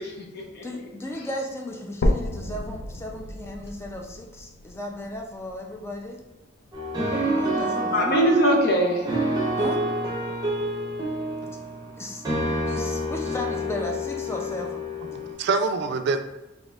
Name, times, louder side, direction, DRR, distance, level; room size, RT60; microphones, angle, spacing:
voice 1, 0.0-0.6 7.5-9.1, equal, 55° left, 0 dB, 0.8 m, -23 dB
voice 2, 0.6-6.2 7.4-8.2 9.6-9.8 12.0-12.2 12.7-14.8, left 1 dB, 15° left, 1 dB, 0.4 m, -35 dB
sound 1, 2.0-6.0 6.6-6.7 7.2-7.3 7.7-7.8 8.6-8.7, left 1 dB, 80° left, 0.4 m, -30 dB
sound 2, 6.7-15.3, equal, 20° right, 0.8 m, -28 dB
voice 3, 11.4-12.2 15.0-16.2, right 4 dB, 60° right, 8 dB, 0.3 m, -28 dB
4.1 x 2.8 x 2.4 m, 1.0 s
head